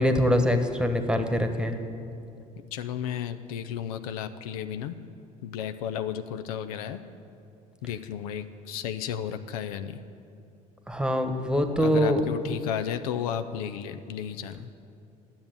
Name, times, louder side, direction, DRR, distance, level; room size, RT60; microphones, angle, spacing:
voice 1, 0.0-1.8 10.9-12.2, equal, 5° right, 6 dB, 1.2 m, -24 dB
voice 2, 2.7-5.0 5.4-7.0 7.8-10.0 11.8-14.7, left 9 dB, 80° left, 10 dB, 0.5 m, -33 dB
10.5 x 7.2 x 8.8 m, 2.6 s
hypercardioid pair, 70°, 18 cm